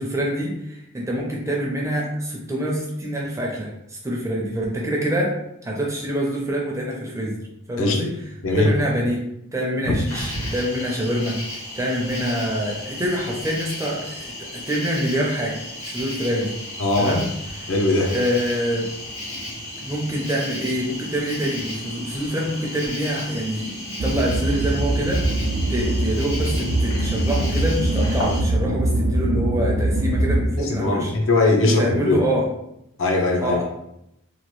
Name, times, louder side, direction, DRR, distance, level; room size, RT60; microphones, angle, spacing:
voice 1, 0.0-5.3 5.6-7.4 7.7-8.1 8.6-9.2 9.5-11.4 11.8-16.6 17.0-17.2 17.6-17.7 18.1-18.9 19.8-23.7 24.0-31.1 31.6-32.4 33.4-33.6, equal, 15° right, -2 dB, 0.5 m, -25 dB
Cricket, 10.1-28.4, left 1 dB, 80° left, 1.5 m, -34 dB
voice 2, 16.8-17.2 17.7-18.1 30.6-32.2 33.0-33.6, left 2 dB, 65° left, 1 dB, 0.5 m, -20 dB
sound 1, 24.0-30.4, right 1 dB, 75° right, 0.4 m, -22 dB
2.9 x 2.3 x 3.0 m, 0.81 s
head